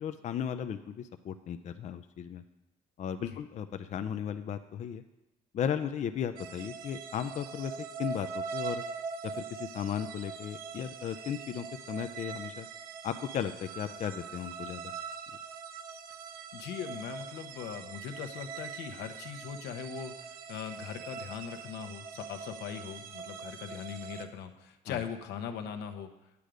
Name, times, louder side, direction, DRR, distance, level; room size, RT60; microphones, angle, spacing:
voice 1, 0.0-2.4 3.0-5.0 5.5-7.7 8.0-8.8 9.2-12.7 13.0-14.9 24.9-25.0, left 8 dB, 45° left, 9 dB, 0.5 m, -35 dB
sound 1, 6.4-24.3, right 5 dB, 60° right, 1.0 m, -42 dB
voice 2, 16.5-26.1, left 8 dB, 85° left, 7 dB, 1.0 m, -40 dB
9.2 x 8.3 x 5.1 m, 0.96 s
cardioid pair, 110°, 17 cm